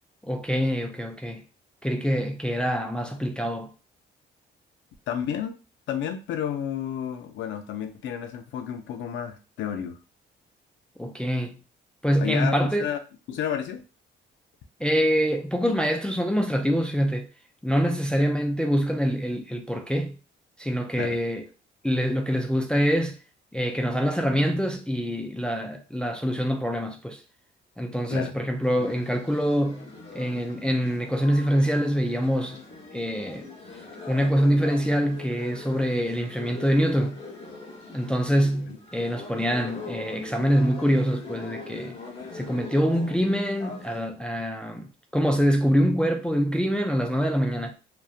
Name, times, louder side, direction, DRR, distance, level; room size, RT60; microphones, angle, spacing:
voice 1, 0.2-1.4 1.8-3.7 11.0-11.6 12.0-12.9 14.8-17.3 17.6-20.2 20.6-21.4 21.8-23.2 23.5-27.2 27.8-29.9 30.1-32.6 32.9-33.4 34.1-37.2 37.9-42.0 42.3-44.9 45.1-47.7, equal, 5° left, 0.3 m, -25 dB
voice 2, 5.1-5.6 5.9-10.0 12.2-13.0 13.3-13.8 21.0-21.2 28.1-28.3 38.7-38.8, left 9 dB, 70° left, 0.4 m, -31 dB
sound 1, 28.6-44.1, left 3 dB, 30° left, 0.8 m, -42 dB
2.7 x 2.1 x 2.3 m
cardioid pair, 90°, 20 cm